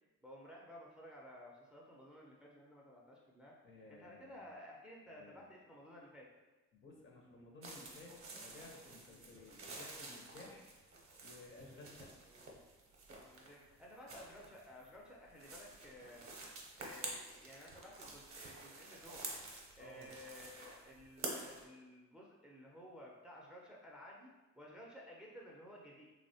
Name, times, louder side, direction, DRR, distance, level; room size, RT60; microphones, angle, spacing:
voice 1, 0.2-3.5 3.9-6.3 9.2-9.3 12.3-12.6 13.2-16.3 16.8-19.3 19.8-26.0, equal, 5° right, -3 dB, 0.4 m, -55 dB
voice 2, 3.6-4.5 5.1-5.4 6.7-8.1 8.4-10.6 11.2-12.1 19.8-20.1, left 3 dB, 40° left, 0 dB, 0.6 m, -56 dB
sound 1, 7.6-21.7, right 3 dB, 45° right, 0.6 m, -50 dB
2.9 x 2.1 x 2.6 m, 1.2 s
cardioid pair, 90°, 30 cm